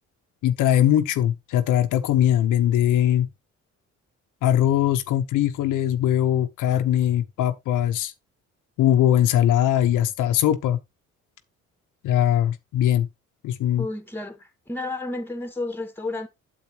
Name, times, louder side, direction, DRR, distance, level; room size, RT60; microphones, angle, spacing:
voice 1, 0.4-3.3 4.4-8.1 8.8-10.8 12.0-13.1 13.4-13.9, left 11 dB, 85° left, 1.0 m, -21 dB
voice 2, 13.8-16.3, left 2 dB, 5° left, 1.9 m, -31 dB
8.5 x 7.8 x 3.0 m
cardioid pair, 90°, 30 cm